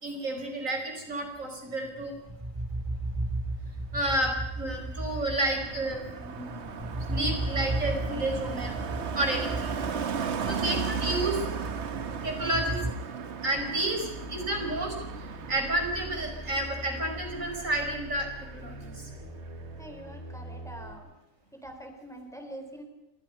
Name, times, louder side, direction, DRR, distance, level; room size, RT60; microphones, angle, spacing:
voice 1, 0.0-2.1 3.9-8.8 9.1-9.8 10.5-11.4 12.2-12.8 13.4-14.9 15.5-18.3 18.5-19.1, right 1 dB, 85° right, 3 dB, 5.6 m, -31 dB
sound 1, 1.8-12.9, right 2 dB, 15° right, 2.2 m, -35 dB
Car passing by, 4.4-19.2 19.4-19.8, right 6 dB, 60° right, 1.3 m, -36 dB
sound 2, 13.6-20.9, equal, 25° left, 4.1 m, -43 dB
voice 2, 19.8-21.1 21.5-22.8, right 1 dB, ahead, 5 dB, 3.7 m, -44 dB
29.5 x 26.5 x 5.6 m, 0.92 s
omnidirectional pair, 1.3 m